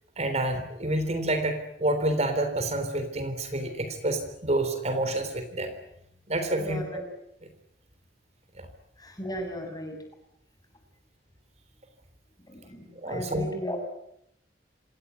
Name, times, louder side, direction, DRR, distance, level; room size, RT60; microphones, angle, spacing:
voice 1, 0.2-5.7 6.3-7.0 8.6-8.7 13.0-13.5, right 1 dB, 40° right, 8 dB, 3.6 m, -28 dB
voice 2, 6.6-7.0 9.0-10.0 12.5-13.8, equal, 20° left, 4 dB, 7.1 m, -36 dB
27.0 x 19.0 x 9.6 m, 0.77 s
head